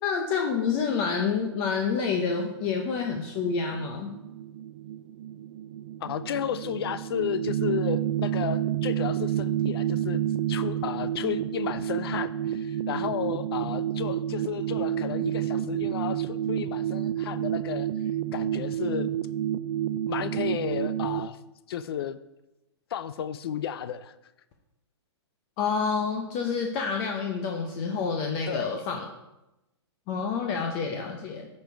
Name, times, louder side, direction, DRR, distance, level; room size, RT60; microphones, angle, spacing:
voice 1, 0.0-4.1 25.6-29.1 30.1-31.5, left 5 dB, 30° left, 3 dB, 0.8 m, -28 dB
sound 1, 2.2-21.3, right 11 dB, 50° right, 0.4 m, -30 dB
voice 2, 6.0-10.2 10.5-17.9 18.3-19.1 20.1-21.4 21.7-22.2 22.9-24.1 28.5-28.7, left 9 dB, 55° left, 13 dB, 0.5 m, -33 dB
8.9 x 5.4 x 4.6 m, 0.94 s
hypercardioid pair, 155°, 15 cm